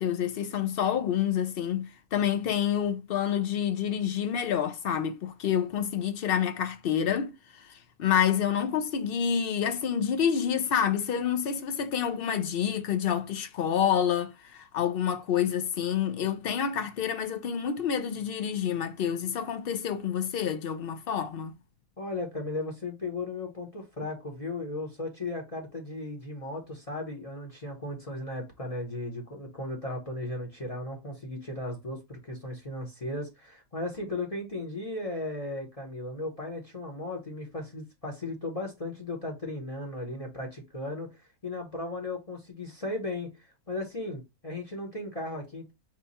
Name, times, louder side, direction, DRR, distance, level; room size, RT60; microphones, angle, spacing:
voice 1, 0.0-21.5, left 8 dB, 65° left, 0.5 m, -28 dB
voice 2, 22.0-45.7, left 2 dB, 30° left, 0.9 m, -36 dB
4.6 x 2.3 x 4.0 m
omnidirectional pair, 1.4 m